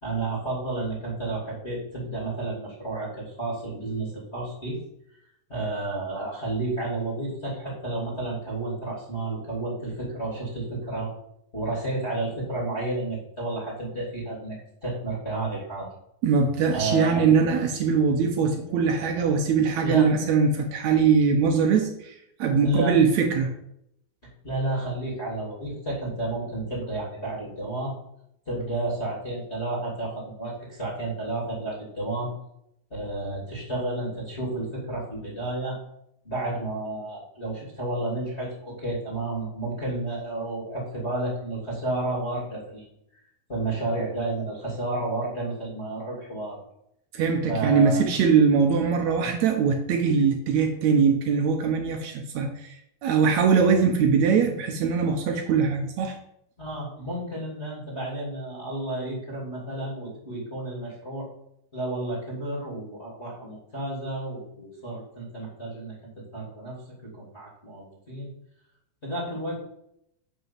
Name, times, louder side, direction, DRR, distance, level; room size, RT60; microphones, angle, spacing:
voice 1, 0.0-4.8 5.5-11.1 11.5-14.5 14.8-15.9 16.7-17.2 19.2-19.3 19.8-20.1 22.6-23.0 24.4-27.9 28.5-32.3 32.9-35.8 36.2-42.9 43.5-46.6 47.5-48.0 56.6-61.3 61.7-65.9 66.3-66.8 67.0-68.3 69.0-69.6, right 2 dB, 20° left, -4 dB, 2.5 m, -31 dB
voice 2, 16.2-23.5 47.1-56.2, right 5 dB, 75° right, 5 dB, 1.6 m, -22 dB
7.7 x 5.6 x 7.4 m, 0.77 s
omnidirectional pair, 4.5 m